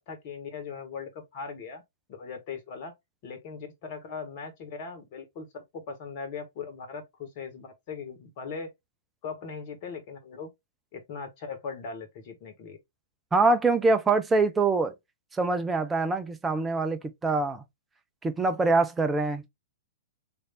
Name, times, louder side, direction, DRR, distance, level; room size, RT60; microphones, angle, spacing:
voice 1, 0.0-1.8 2.1-2.9 3.2-8.7 9.2-10.5 10.9-12.8, left 5 dB, 40° left, 1.3 m, -39 dB
voice 2, 13.3-14.9 15.4-17.6 18.2-19.4, right 3 dB, 10° right, 0.6 m, -24 dB
3.3 x 2.6 x 4.0 m
figure-of-eight pair, 110°, 0 cm